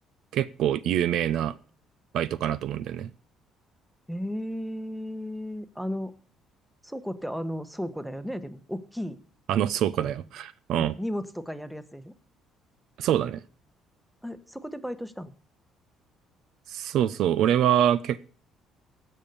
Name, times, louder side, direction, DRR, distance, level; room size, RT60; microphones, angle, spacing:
voice 1, 0.3-1.5 2.1-3.1 9.5-10.9 13.0-13.4 16.7-18.3, right 11 dB, 70° right, 17 dB, 0.5 m, -25 dB
voice 2, 4.1-6.1 6.8-9.2 10.0-10.1 10.7-12.1 14.2-15.3, equal, ahead, 12 dB, 1.1 m, -34 dB
16.0 x 5.6 x 6.8 m, 0.42 s
supercardioid pair, 80°, 0 cm